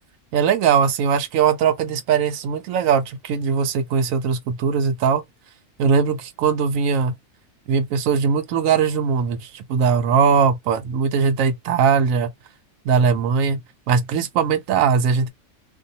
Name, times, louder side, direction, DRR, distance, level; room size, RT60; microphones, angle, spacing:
voice 1, 0.3-5.2 5.8-7.1 7.7-12.3 12.8-13.6 13.9-15.3, right 6 dB, 80° right, 1.0 m, -20 dB
2.6 x 2.2 x 2.7 m
omnidirectional pair, 1.4 m